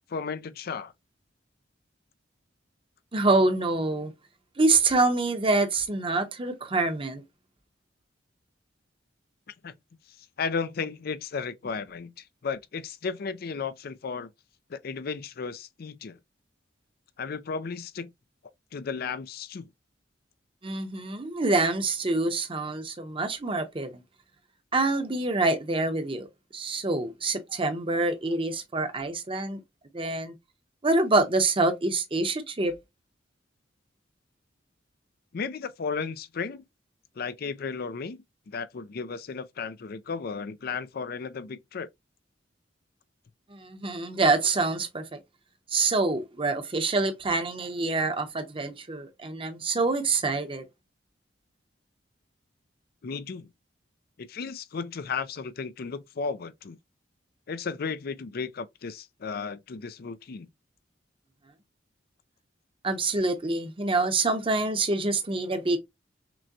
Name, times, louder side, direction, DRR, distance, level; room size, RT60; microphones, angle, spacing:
voice 1, 0.1-0.9 9.6-9.7 10.4-14.3 14.7-16.2 17.2-18.1 18.7-19.7 35.3-36.6 37.2-41.9 53.0-53.5 54.2-56.8 57.5-60.5, left 5 dB, 55° left, 0.4 m, -34 dB
voice 2, 3.1-4.1 4.6-7.2 20.6-23.9 24.7-26.3 26.5-29.6 29.9-30.3 30.8-32.7 43.5-45.2 45.7-50.6 62.8-65.8, right 3 dB, 30° right, 0.8 m, -26 dB
6.0 x 2.2 x 2.7 m
head